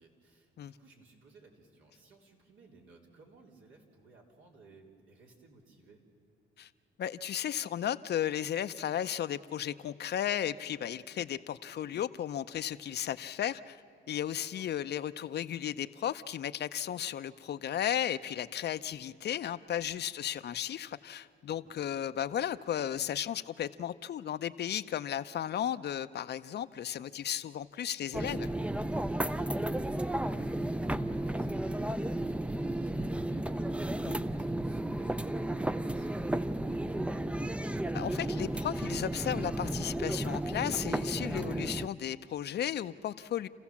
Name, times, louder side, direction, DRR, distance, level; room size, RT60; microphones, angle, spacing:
voice 1, 0.0-6.0 14.5-14.7 20.1-20.3 21.4-21.9 29.1-37.2, right 3 dB, 80° right, -1 dB, 3.5 m, -58 dB
voice 2, 7.0-13.8 14.1-28.5 34.0-34.2 37.9-43.5, left 10 dB, 55° left, 13 dB, 0.6 m, -34 dB
sound 1, 28.1-41.9, right 1 dB, 5° right, 0.5 m, -33 dB
29.0 x 15.0 x 7.2 m, 2.5 s
cardioid pair, 90°, 20 cm